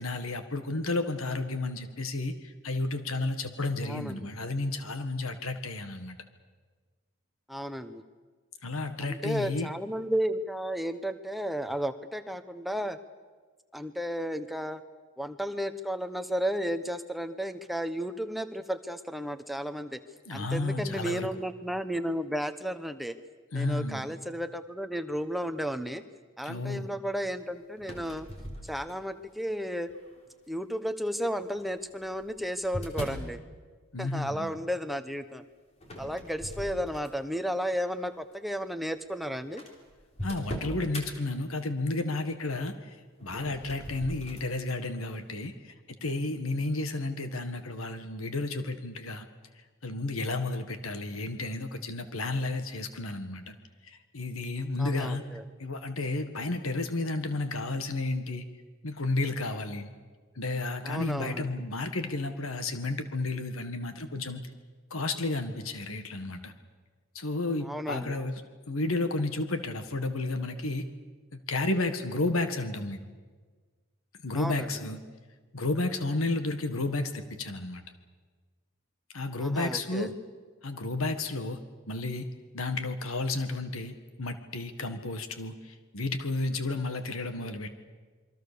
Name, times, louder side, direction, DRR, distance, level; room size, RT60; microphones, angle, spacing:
voice 1, 0.0-6.2 8.6-9.7 20.3-21.3 23.5-24.0 26.4-26.9 33.9-34.5 40.2-45.7 46.0-49.3 49.8-53.5 53.9-55.2 55.6-58.4 58.8-59.9 60.3-64.5 64.9-66.5 67.1-68.4 68.7-70.9 71.3-73.0 74.2-75.0 75.5-77.8 79.1-80.1 80.6-81.6 81.9-82.3 82.5-87.7, left 2 dB, 80° left, 8 dB, 1.7 m, -32 dB
voice 2, 3.8-4.2 7.5-8.0 9.0-13.0 13.7-14.8 15.2-20.0 20.3-23.1 23.5-26.0 26.4-28.3 28.7-29.9 30.5-33.4 34.0-35.4 36.0-39.6 54.8-55.4 60.8-61.5 67.6-68.2 74.3-74.7 79.4-80.1, equal, ahead, 9 dB, 0.9 m, -33 dB
sound 1, 27.8-29.2 29.9-30.3 31.4-33.3 35.8-37.4 37.8-38.1 38.9-39.0 39.1-39.2 39.6-41.1 43.2-44.5, equal, 30° left, 3.7 m, -40 dB
28.0 x 23.0 x 6.9 m, 1.4 s
head